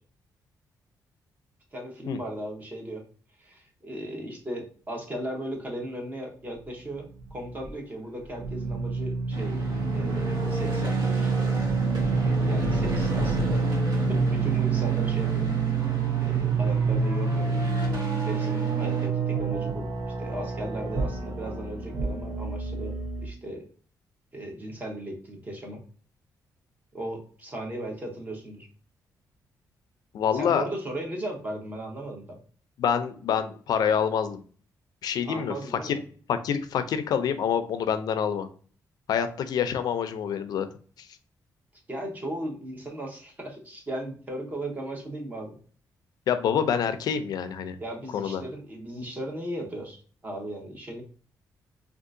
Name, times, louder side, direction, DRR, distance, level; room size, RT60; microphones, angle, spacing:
voice 1, 1.7-3.0 3.4-9.5 9.9-11.5 12.5-13.7 14.1-15.5 16.2-17.6 18.3-19.9 20.2-23.7 24.3-25.8 26.9-28.7 30.3-32.4 35.2-36.0 41.9-45.5 47.8-51.0, right 1 dB, 25° right, 1 dB, 0.8 m, -37 dB
sound 1, 7.2-7.7 8.4-23.3, right 4 dB, 65° right, 0.7 m, -27 dB
sound 2, 9.3-19.1, right 3 dB, 85° right, 1.0 m, -33 dB
voice 2, 30.1-30.6 32.8-34.4 35.0-35.5 35.8-35.9 36.3-38.5 39.1-40.7 46.3-47.8 48.1-48.4, left 8 dB, 70° left, 10 dB, 0.3 m, -26 dB
3.6 x 2.4 x 2.5 m, 0.44 s
wide cardioid pair, 155°, 7 cm